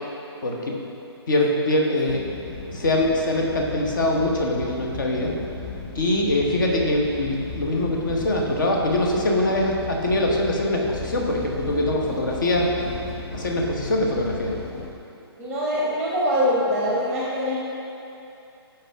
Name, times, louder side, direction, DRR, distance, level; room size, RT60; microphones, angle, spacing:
voice 1, 0.4-0.8 1.3-2.2 2.7-5.3 5.9-12.7 13.3-14.6, left 1 dB, 50° left, 0 dB, 1.1 m, -23 dB
sound 1, 2.1-14.9, left 3 dB, 25° left, 0.7 m, -36 dB
voice 2, 15.4-17.6, equal, ahead, -7 dB, 1.0 m, -23 dB
12.0 x 4.6 x 3.6 m, 2.8 s
figure-of-eight pair, 135°, 14 cm